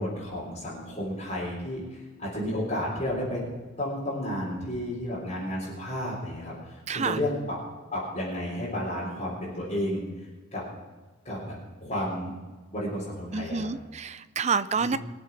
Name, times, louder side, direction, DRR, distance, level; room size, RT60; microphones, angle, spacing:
voice 1, 0.0-3.4 3.8-7.6 7.9-10.0 10.5-10.6 11.2-11.6 11.8-12.3 12.7-13.7 14.8-15.0, left 1 dB, 30° left, -9 dB, 3.9 m, -32 dB
voice 2, 6.9-7.2 13.3-15.0, right 5 dB, 30° right, 14 dB, 0.4 m, -28 dB
22.5 x 7.7 x 6.0 m, 1.2 s
head